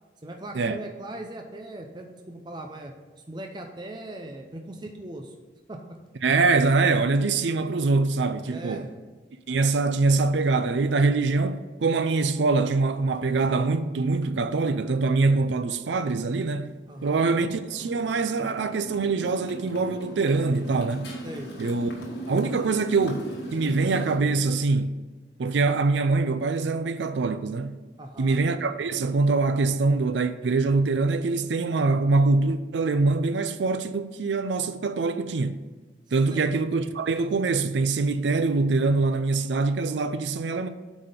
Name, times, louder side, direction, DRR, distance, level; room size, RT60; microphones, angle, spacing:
voice 1, 0.2-2.9 3.3-5.3 5.7-5.8 8.4-8.9 16.9-17.3 21.2-21.5 28.0-28.4 36.3-36.5, right 1 dB, 25° right, 0.6 m, -39 dB
voice 2, 6.2-8.9 9.5-16.7 17.0-21.1 21.6-21.9 22.3-23.2 23.5-25.0 25.4-27.8 28.2-35.6 36.1-40.7, right 3 dB, 80° right, 0.5 m, -24 dB
Motorcycle, 17.0-24.2, right 1 dB, 65° left, 1.6 m, -39 dB
8.9 x 4.2 x 5.1 m
head